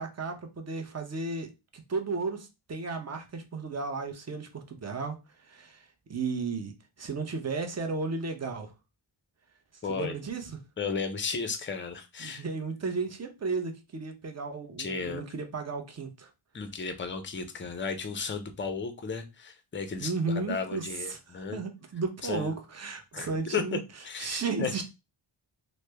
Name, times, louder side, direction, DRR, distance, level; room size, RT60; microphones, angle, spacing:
voice 1, 0.0-5.2 5.5-5.8 6.1-6.7 7.0-8.7 9.9-10.6 12.2-16.3 20.0-23.8 24.2-24.8, right 4 dB, 35° right, 0.6 m, -34 dB
voice 2, 9.8-10.2 10.8-12.4 14.8-15.2 16.5-21.6 22.2-22.5 23.1-23.8 24.0-24.8, left 5 dB, 25° left, 0.4 m, -34 dB
3.1 x 2.0 x 3.2 m
wide cardioid pair, 100°, 50 cm